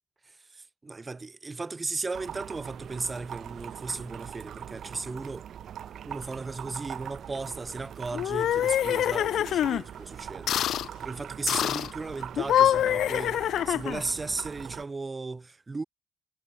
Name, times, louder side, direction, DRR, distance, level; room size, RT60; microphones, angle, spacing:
voice 1, 0.2-5.5 6.0-15.8, right 3 dB, 25° right, 1.7 m, -36 dB
sound 1, 2.1-14.8, right 9 dB, 65° right, 1.5 m, -42 dB
sound 2, 8.1-9.8 10.5-10.9 11.5-11.9 12.4-14.1, left 11 dB, 75° left, 0.8 m, -25 dB
cardioid pair, 90°, 0 cm